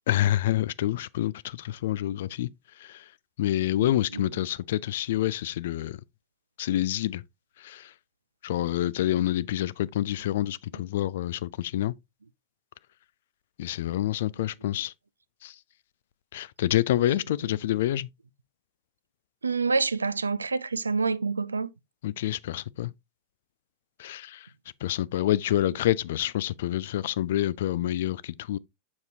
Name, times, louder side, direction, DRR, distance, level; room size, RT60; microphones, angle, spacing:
voice 1, 0.1-2.5 3.4-6.0 6.6-7.2 7.6-7.8 8.4-11.9 13.6-14.9 15.4-15.5 16.3-18.1 22.0-22.9 24.0-24.4 24.8-28.6, left 13 dB, 55° left, 0.4 m, -27 dB
voice 2, 3.8-4.2 10.7-10.8 19.4-21.7 25.7-25.8, right 4 dB, 75° right, 0.4 m, -28 dB
7.0 x 6.5 x 2.6 m
figure-of-eight pair, 90°, 0 cm